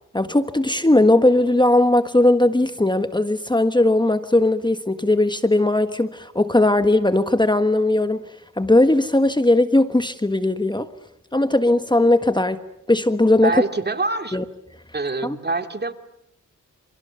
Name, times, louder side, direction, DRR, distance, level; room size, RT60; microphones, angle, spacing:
voice 1, 0.1-8.2 8.6-10.9 11.3-12.6 12.9-13.5 14.3-14.4 15.2-15.4, left 1 dB, 15° left, 9 dB, 1.5 m, -18 dB
voice 2, 13.4-14.4 14.9-15.9, right 3 dB, 30° right, 7 dB, 2.4 m, -25 dB
29.0 x 28.5 x 7.0 m, 0.81 s
cardioid pair, 70°, 31 cm